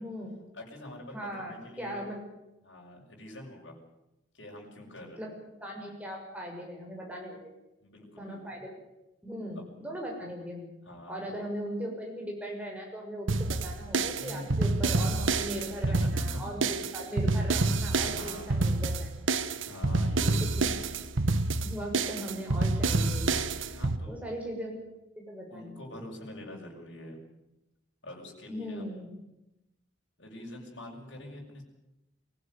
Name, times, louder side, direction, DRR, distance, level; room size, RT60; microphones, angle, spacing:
voice 1, 0.0-0.5 1.1-2.2 5.2-5.3 5.6-7.5 8.2-8.7 9.2-10.7 11.1-19.1 20.6-20.7 21.6-23.3 24.0-24.8 25.2-25.8 28.5-29.2, equal, 5° right, 0 dB, 6.4 m, -39 dB
voice 2, 0.5-2.0 2.6-3.8 4.3-5.3 7.8-8.6 9.5-9.7 10.9-11.3 14.2-14.8 15.9-16.4 18.0-18.8 19.6-20.5 23.7-24.2 25.5-27.2 28.0-29.0 30.2-31.6, left 1 dB, 70° left, -1 dB, 7.0 m, -45 dB
sound 1, 13.3-24.0, right 3 dB, 90° right, 1.2 m, -28 dB
23.5 x 16.0 x 9.5 m, 0.92 s
head